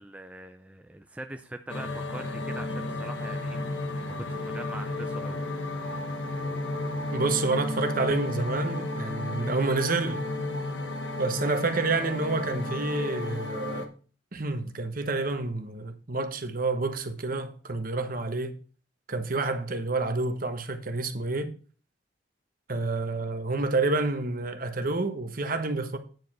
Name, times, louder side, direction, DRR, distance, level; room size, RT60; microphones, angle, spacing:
voice 1, 0.0-3.6 3.9-4.0 4.3-5.4, right 1 dB, 5° right, 0.4 m, -42 dB
sound 1, 1.7-13.9, left 2 dB, 75° left, 1.2 m, -33 dB
voice 2, 7.1-10.2 11.2-13.9 14.3-18.5 19.1-21.5 22.7-26.0, right 3 dB, 50° right, 1.1 m, -29 dB
9.3 x 5.0 x 6.1 m
head